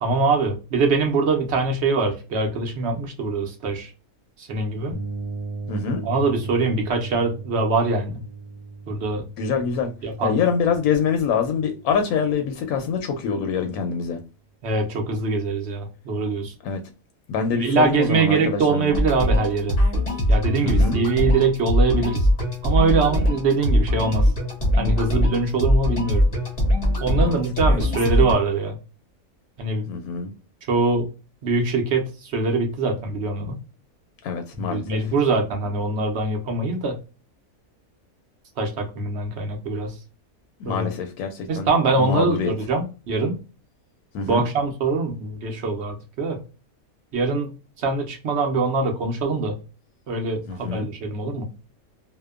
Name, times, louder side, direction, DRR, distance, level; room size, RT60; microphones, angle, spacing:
voice 1, 0.0-3.9 4.4-5.0 6.0-8.2 8.9-9.2 10.0-10.4 14.6-16.5 17.6-19.8 20.3-22.3 22.6-24.3 24.8-26.3 27.0-28.8 29.6-29.9 30.7-31.0 31.4-33.6 34.5-37.0 38.6-39.9 40.6-40.9 41.5-43.4 44.3-46.4 47.1-49.6 50.1-51.5, right 3 dB, 55° right, 0.9 m, -23 dB
sound 1, 4.9-12.6, right 3 dB, 85° right, 1.1 m, -37 dB
voice 2, 5.7-6.0 9.4-9.9 10.2-14.2 16.6-16.8 17.3-19.0 20.6-21.0 27.2-27.4 29.9-30.3 34.2-35.0 40.6-41.7 42.0-42.5 44.1-44.4 50.5-50.9, left 6 dB, 80° left, 1.0 m, -25 dB
sound 2, 18.9-28.3, equal, 40° left, 0.6 m, -21 dB
2.8 x 2.1 x 2.3 m
omnidirectional pair, 1.5 m